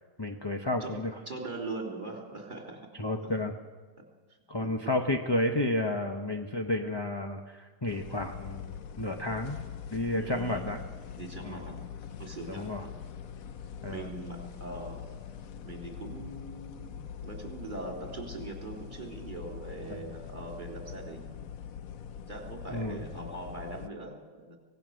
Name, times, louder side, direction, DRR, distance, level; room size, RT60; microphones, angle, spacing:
voice 1, 0.2-1.2 3.0-3.5 4.5-9.6 9.9-10.8 11.4-11.8 12.5-12.9 13.8-14.1 19.9-20.0 22.7-23.0, left 1 dB, 20° left, 3 dB, 0.8 m, -31 dB
voice 2, 1.3-2.9 3.2-3.3 4.0-4.1 4.6-4.9 10.2-10.7 11.2-11.8 12.2-12.9 13.9-15.1 15.6-21.6 22.3-24.6, right 2 dB, 30° right, 0 dB, 3.6 m, -41 dB
sound 1, 7.9-23.9, left 8 dB, 60° left, 1.2 m, -43 dB
25.5 x 18.0 x 6.4 m, 1.4 s
omnidirectional pair, 1.8 m